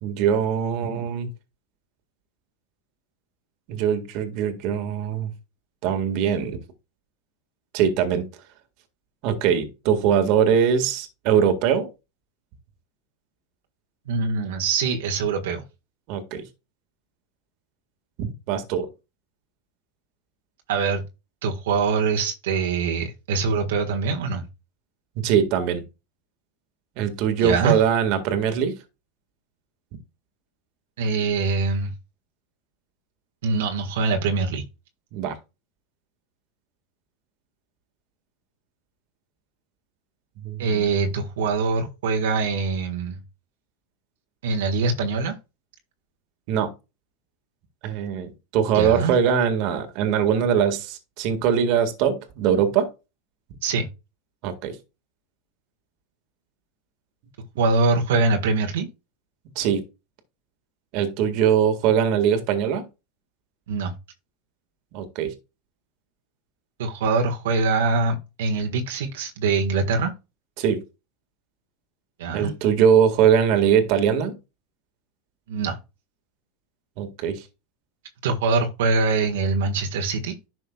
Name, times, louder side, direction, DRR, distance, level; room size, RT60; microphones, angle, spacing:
voice 1, 0.0-1.3 3.7-5.3 5.8-6.6 7.7-8.3 9.2-11.9 16.1-16.5 18.2-18.9 25.2-25.8 27.0-28.7 35.1-35.4 40.4-40.9 46.5-46.7 47.8-52.9 54.4-54.8 59.6-59.8 60.9-62.8 64.9-65.3 70.6-70.8 72.3-74.3 77.0-77.4, right 8 dB, 55° right, 1.8 m, -22 dB
voice 2, 14.1-15.6 20.7-21.0 21.4-24.4 27.4-27.8 31.0-31.9 33.4-34.6 40.6-43.2 44.4-45.4 48.7-49.1 53.6-53.9 57.6-58.9 63.7-63.9 66.8-70.1 72.2-72.5 75.5-75.8 78.2-80.4, right 4 dB, 80° right, 1.6 m, -23 dB
10.5 x 6.3 x 2.4 m
supercardioid pair, 120°, 0 cm